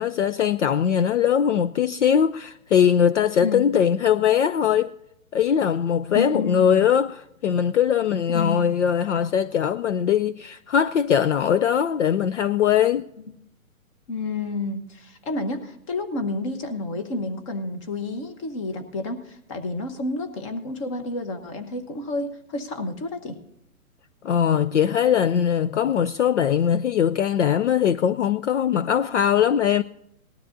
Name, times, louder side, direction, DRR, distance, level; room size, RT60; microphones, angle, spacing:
voice 1, 0.0-4.9 5.3-13.1 24.2-29.8, left 8 dB, 60° left, 0.5 m, -21 dB
voice 2, 6.1-6.6 8.3-8.6 14.1-23.4, left 2 dB, 25° left, 1.0 m, -30 dB
19.0 x 12.5 x 2.6 m
hypercardioid pair, 160°, 42 cm